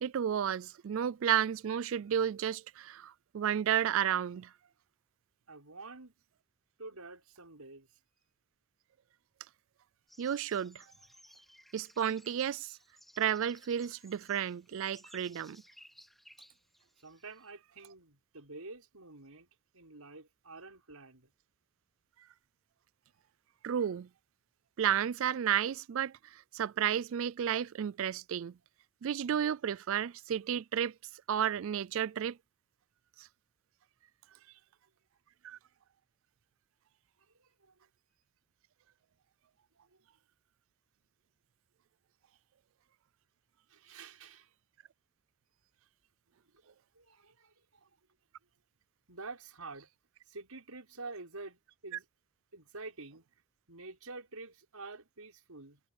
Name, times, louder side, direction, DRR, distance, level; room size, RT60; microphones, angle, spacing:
voice 1, 0.0-4.5 10.2-10.8 11.7-12.8 13.2-15.6 23.6-24.1 24.8-28.5 29.0-30.9 31.3-32.4 33.2-33.3 35.4-35.6, right 9 dB, 60° right, 0.3 m, -32 dB
voice 2, 5.5-6.1 6.8-7.9 17.0-21.3 34.3-34.4 37.4-37.7 43.7-44.5 46.6-47.9 49.1-49.9 50.3-52.1 52.5-53.2 53.7-55.8, right 3 dB, 90° right, 5.9 m, -48 dB
sound 1, 10.1-17.5, equal, ahead, 3.2 m, -60 dB
head